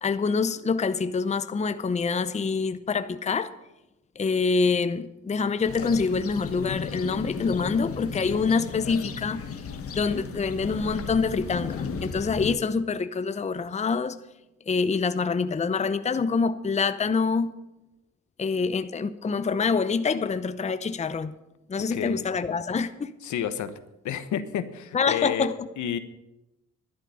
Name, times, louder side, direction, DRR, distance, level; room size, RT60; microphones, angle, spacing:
voice 1, 0.0-3.5 4.2-9.4 9.9-14.2 14.7-17.5 18.4-21.3 21.7-23.1 24.9-25.7, left 5 dB, 25° left, 0.7 m, -26 dB
sound 1, 5.6-12.5, left 5 dB, 50° left, 1.5 m, -34 dB
voice 2, 21.9-22.2 23.2-23.7 24.0-25.5 25.8-26.0, left 9 dB, 75° left, 1.2 m, -30 dB
11.5 x 9.9 x 7.0 m
cardioid pair, 90°, 30 cm